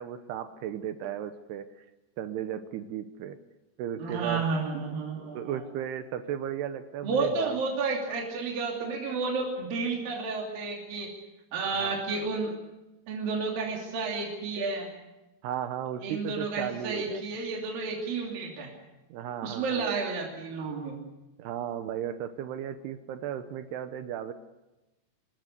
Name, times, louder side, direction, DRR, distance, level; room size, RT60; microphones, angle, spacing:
voice 1, 0.0-1.9 2.2-3.4 3.8-4.5 5.3-7.6 11.8-12.0 15.4-17.2 19.1-19.9 21.4-24.3, right 10 dB, 80° right, 9 dB, 2.9 m, -35 dB
voice 2, 4.0-5.7 7.0-11.1 11.5-12.5 13.1-14.9 16.0-18.7 19.4-21.0, right 4 dB, 60° right, -1 dB, 4.6 m, -31 dB
26.0 x 20.5 x 6.7 m, 1.0 s
omnidirectional pair, 4.8 m